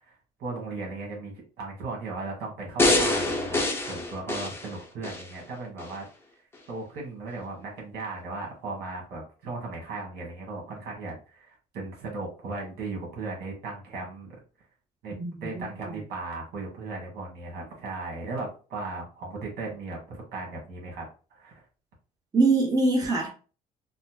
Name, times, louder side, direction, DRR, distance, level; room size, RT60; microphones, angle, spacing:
voice 1, 0.0-6.1 6.7-14.3 15.0-15.1 15.4-21.0 21.3-21.6, right 3 dB, 75° right, 1.6 m, -37 dB
sound 1, 2.8-5.3 5.8-5.9, left 2 dB, 15° left, 0.7 m, -25 dB
voice 2, 15.2-16.0 22.3-23.3, right 3 dB, 20° right, 0.9 m, -24 dB
4.0 x 2.1 x 2.8 m
cardioid pair, 110°, 17 cm